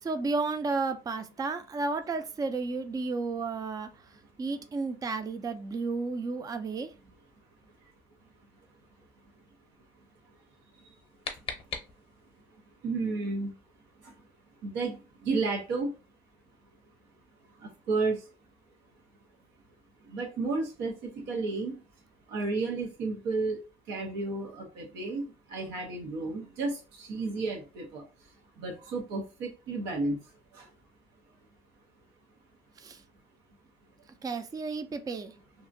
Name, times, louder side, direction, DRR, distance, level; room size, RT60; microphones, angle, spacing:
voice 1, 0.0-3.9 4.4-6.9 32.8-33.0 34.2-35.3, right 3 dB, 20° right, 0.4 m, -32 dB
sound 1, 10.7-12.4, left 5 dB, 35° left, 0.7 m, -40 dB
voice 2, 12.8-13.5 14.6-15.0 15.2-15.9 17.9-18.2 20.1-21.7 22.3-23.6 23.9-25.2 25.5-26.7 27.0-28.0 28.6-30.2, right 3 dB, 90° right, 0.8 m, -31 dB
2.8 x 2.5 x 2.6 m
cardioid pair, 110°, 17 cm